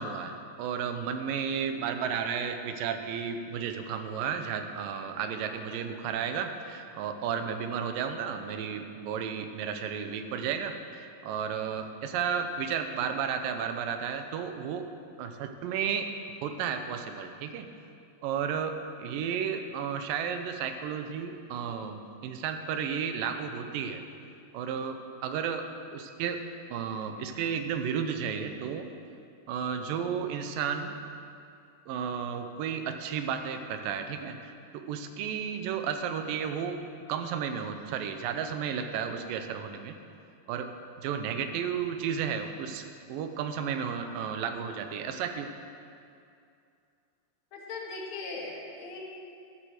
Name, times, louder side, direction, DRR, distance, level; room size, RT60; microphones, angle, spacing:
voice 1, 0.0-14.9 15.2-16.1 16.4-17.7 18.2-24.0 24.5-25.6 25.9-26.4 26.7-28.9 29.5-31.0 31.9-36.8 37.1-40.0 40.5-40.7 41.0-45.5, right 7 dB, 85° right, 7 dB, 2.4 m, -33 dB
voice 2, 47.5-49.0, left 3 dB, 60° left, -3 dB, 2.6 m, -39 dB
11.5 x 7.6 x 6.4 m, 2.5 s
omnidirectional pair, 3.9 m